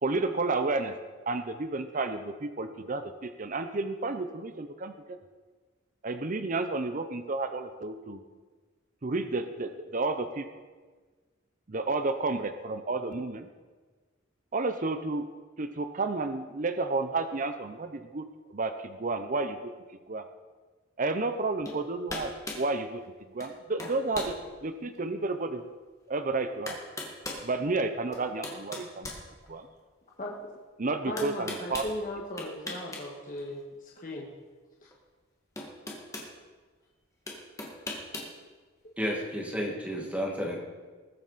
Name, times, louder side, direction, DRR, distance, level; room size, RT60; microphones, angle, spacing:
voice 1, 0.0-0.9 1.3-5.2 6.0-8.2 9.0-10.5 11.7-13.5 14.5-15.3 15.6-18.3 18.5-19.7 20.1-20.2 21.0-23.0 23.3-25.6 26.1-26.8 27.4-29.1 29.5-29.7 30.8-31.8 32.4-32.5, right 3 dB, 40° right, 9 dB, 0.7 m, -31 dB
sound 1, 21.6-21.8 22.1-22.7 23.4-23.5 23.8-24.4 24.9-25.0 26.1-26.2 26.7-27.5 28.1-29.8 31.2-31.9 32.4-33.0 33.3-33.5 34.9-35.0 35.6-36.3 37.3-38.3, left 2 dB, 15° left, 1.8 m, -38 dB
voice 2, 31.1-34.2 34.8-34.9, left 1 dB, 40° left, -3 dB, 1.6 m, -37 dB
voice 3, 39.0-40.6, equal, 5° right, -1 dB, 2.0 m, -31 dB
20.5 x 8.2 x 4.1 m, 1.4 s
head